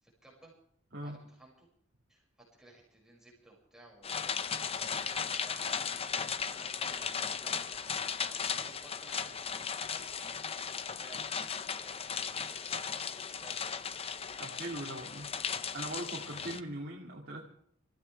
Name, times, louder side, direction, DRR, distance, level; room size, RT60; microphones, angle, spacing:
voice 1, 0.0-0.5 1.0-1.7 2.1-2.2 2.6-4.4 4.9-10.2 10.6-12.9 13.3-13.7, right 2 dB, 5° right, -3 dB, 6.2 m, -57 dB
sound 1, 4.0-16.6, left 6 dB, 30° left, 0.7 m, -36 dB
voice 2, 14.4-15.3 15.7-17.5, right 1 dB, 50° right, -2 dB, 2.5 m, -40 dB
26.0 x 15.5 x 3.5 m, 0.63 s
head